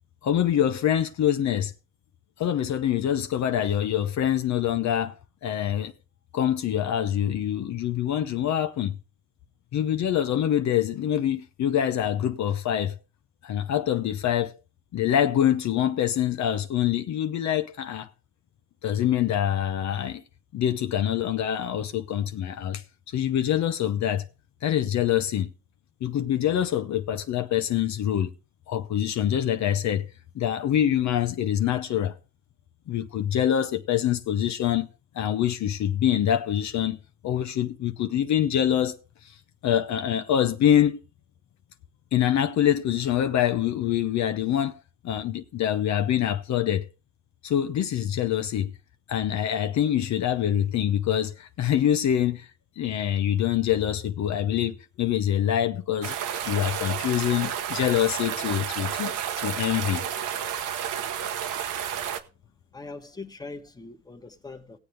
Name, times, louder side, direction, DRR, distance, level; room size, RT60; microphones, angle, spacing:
voice 1, 0.2-1.7 2.4-5.9 6.3-9.0 9.7-13.0 13.4-14.5 14.9-18.1 18.8-20.2 20.5-24.2 24.6-25.5 26.0-28.3 28.7-30.1 30.3-32.2 32.9-34.9 35.1-37.0 37.2-39.0 39.6-41.0 42.1-44.8 45.0-46.9 47.4-48.7 49.1-52.5 52.8-56.1 56.4-60.0, left 10 dB, 65° left, 0.8 m, -25 dB
sound 1, 56.0-62.2, right 9 dB, 85° right, 1.1 m, -31 dB
voice 2, 62.7-64.8, left 3 dB, 15° left, 1.3 m, -41 dB
18.5 x 7.9 x 3.3 m
cardioid pair, 90°, 30 cm